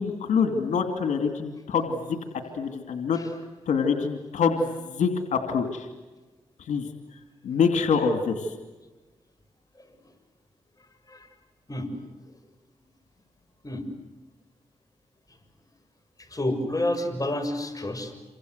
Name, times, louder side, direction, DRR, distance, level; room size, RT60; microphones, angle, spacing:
voice 1, 0.0-2.2 2.6-3.2 3.7-5.9 6.7-6.9 7.4-8.5, left 5 dB, 85° left, 6 dB, 2.6 m, -25 dB
voice 2, 16.2-18.1, left 1 dB, 30° left, 6 dB, 7.0 m, -30 dB
28.5 x 25.0 x 8.1 m, 1.2 s
cardioid pair, 50°, 12 cm